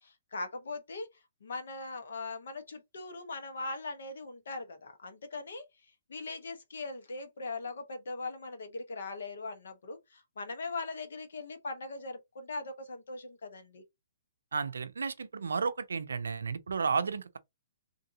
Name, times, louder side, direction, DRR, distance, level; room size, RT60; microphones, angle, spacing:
voice 1, 0.0-1.1 1.4-5.6 6.1-13.8, left 3 dB, 75° left, 1.1 m, -40 dB
voice 2, 14.5-17.4, right 5 dB, 85° right, 0.5 m, -32 dB
3.7 x 2.6 x 2.7 m
hypercardioid pair, 140°, 0 cm